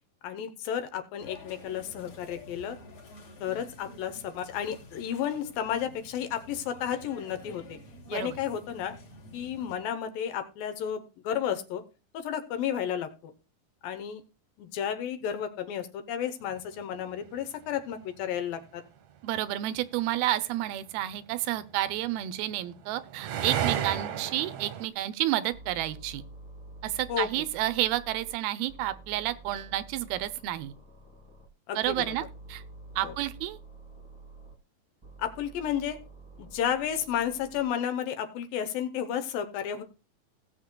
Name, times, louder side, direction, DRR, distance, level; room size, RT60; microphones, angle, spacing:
voice 1, 0.2-2.8 3.4-7.8 8.1-9.0 9.3-11.8 12.1-13.3 13.8-14.2 14.6-18.8 27.1-27.4 31.7-32.2 33.0-33.2 35.2-36.0 36.4-39.8, left 9 dB, 75° left, 2.5 m, -32 dB
sound 1, 1.2-9.8, left 2 dB, 45° left, 3.5 m, -49 dB
sound 2, 16.7-16.8 21.9-24.9, right 10 dB, 65° right, 1.8 m, -32 dB
voice 2, 19.2-26.2 26.8-30.7 31.8-32.6 33.0-33.6, right 14 dB, 85° right, 2.5 m, -30 dB
sound 3, 25.5-28.4 28.7-31.5 31.8-34.5 35.0-37.6, right 2 dB, 15° right, 0.9 m, -49 dB
18.0 x 7.0 x 2.2 m
omnidirectional pair, 4.4 m